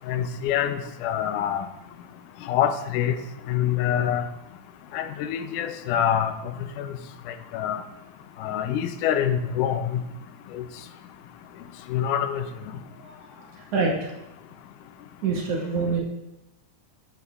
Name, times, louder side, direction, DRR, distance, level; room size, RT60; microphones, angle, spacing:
voice 1, 0.1-1.7 2.5-3.2 3.5-4.2 4.9-6.3 6.8-6.9 7.5-7.8 8.4-10.0 10.5-10.6 11.9-12.5, left 10 dB, 85° left, 8 dB, 2.1 m, -25 dB
voice 2, 13.0-14.1 15.2-16.0, right 4 dB, 65° right, -1 dB, 1.9 m, -27 dB
9.7 x 8.2 x 2.4 m, 0.99 s
omnidirectional pair, 3.5 m